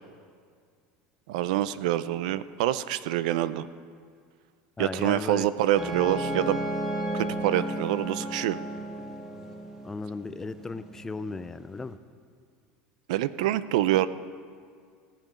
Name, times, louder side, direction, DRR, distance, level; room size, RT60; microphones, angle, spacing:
voice 1, 1.3-3.7 4.8-6.6 7.1-8.6 13.1-14.1, right 13 dB, 80° right, 16 dB, 0.4 m, -26 dB
voice 2, 4.8-5.5 9.8-12.0, left 4 dB, 10° left, 12 dB, 0.4 m, -36 dB
sound 1, 5.8-11.9, right 1 dB, 10° right, 1.2 m, -34 dB
17.5 x 7.5 x 5.2 m, 2.1 s
supercardioid pair, 145°, 4 cm